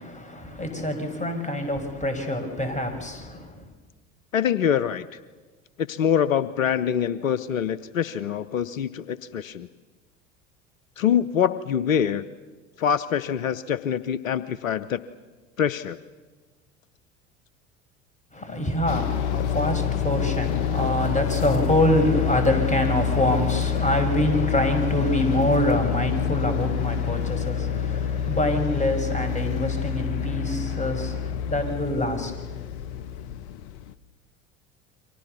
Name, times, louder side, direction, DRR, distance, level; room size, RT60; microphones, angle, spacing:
voice 1, 0.0-3.6 18.3-32.3, left 1 dB, 20° left, 7 dB, 6.2 m, -25 dB
voice 2, 4.3-5.1 5.8-9.7 11.0-12.3 12.8-15.0 15.6-16.0, left 8 dB, 80° left, 16 dB, 0.8 m, -24 dB
sound 1, 18.9-33.9, left 8 dB, 60° left, 1.1 m, -27 dB
29.5 x 24.5 x 7.0 m, 1.3 s
figure-of-eight pair, 70°, 40 cm